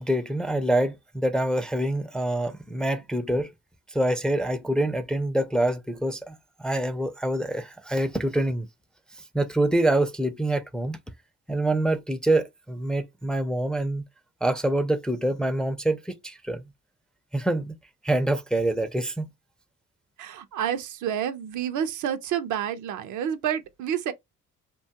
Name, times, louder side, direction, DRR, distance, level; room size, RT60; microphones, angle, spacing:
voice 1, 0.0-3.5 3.9-8.7 9.3-11.0 11.5-14.0 14.4-16.7 17.3-17.8 18.0-19.3, right 1 dB, 5° left, 0.3 m, -26 dB
voice 2, 20.2-24.1, right 9 dB, 75° right, 0.6 m, -29 dB
2.8 x 2.3 x 2.8 m
cardioid pair, 90°, 30 cm